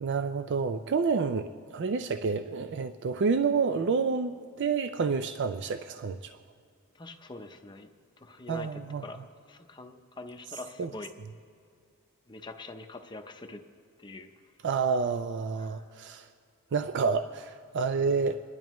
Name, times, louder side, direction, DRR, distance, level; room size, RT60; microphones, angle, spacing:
voice 1, 0.0-6.4 8.5-9.0 10.8-10.9 14.6-16.3 16.7-18.5, right 5 dB, 55° right, 9 dB, 0.4 m, -29 dB
voice 2, 6.9-11.1 12.3-13.6 14.0-14.3 15.6-15.9, left 2 dB, 20° left, 5 dB, 0.6 m, -45 dB
28.5 x 11.0 x 3.1 m, 2.3 s
head